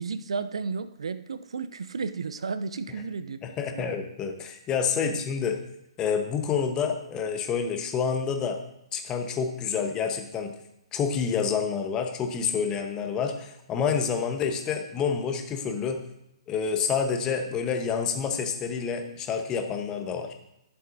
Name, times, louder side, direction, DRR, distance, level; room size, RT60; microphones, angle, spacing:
voice 1, 0.0-3.4 3.7-3.9 5.0-5.2, right 5 dB, 70° right, 14 dB, 0.5 m, -33 dB
voice 2, 3.4-5.6 6.0-8.6 8.9-10.5 10.9-16.0 16.5-20.3, left 6 dB, 20° left, 6 dB, 0.9 m, -28 dB
12.0 x 7.0 x 2.6 m, 0.85 s
figure-of-eight pair, 125°, 3 cm